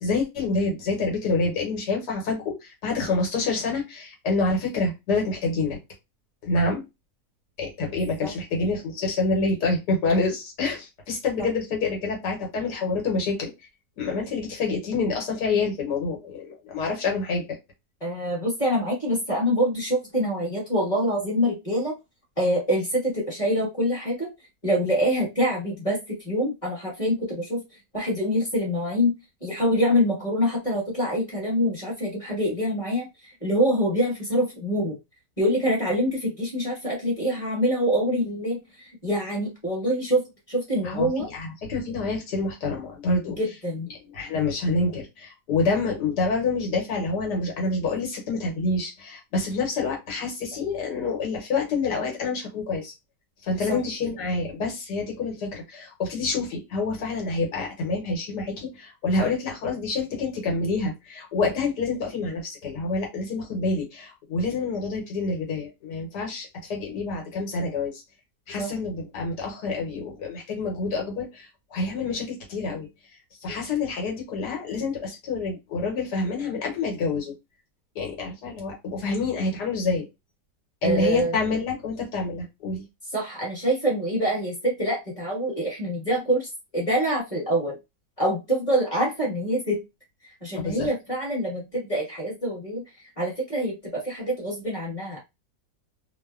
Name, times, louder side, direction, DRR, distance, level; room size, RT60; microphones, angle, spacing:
voice 1, 0.0-5.8 6.4-6.8 7.6-13.5 14.0-17.5 40.8-43.4 44.1-52.9 53.4-68.0 68.5-72.9 73.4-77.3 77.9-80.1 80.8-82.8 90.6-90.9, left 3 dB, 80° left, 0 dB, 1.4 m, -27 dB
voice 2, 18.0-21.9 22.4-24.3 24.6-27.6 27.9-29.1 29.4-35.0 35.4-41.3 43.4-43.9 53.7-53.8 68.6-68.7 80.8-81.4 83.1-86.5 86.7-87.8 88.2-89.8 90.4-92.8 93.2-95.2, equal, 25° left, -3 dB, 1.1 m, -25 dB
3.0 x 2.0 x 2.3 m, 0.22 s
omnidirectional pair, 1.8 m